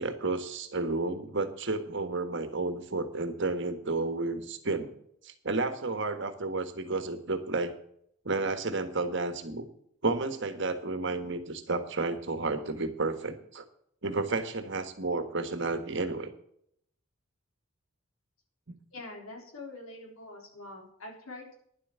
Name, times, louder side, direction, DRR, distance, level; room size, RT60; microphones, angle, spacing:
voice 1, 0.0-4.9 5.2-7.7 8.2-9.6 10.0-13.6 14.0-16.3, right 3 dB, 55° right, 9 dB, 1.5 m, -31 dB
voice 2, 18.9-21.5, left 2 dB, 85° left, 1 dB, 3.8 m, -44 dB
11.0 x 7.8 x 6.9 m, 0.70 s
head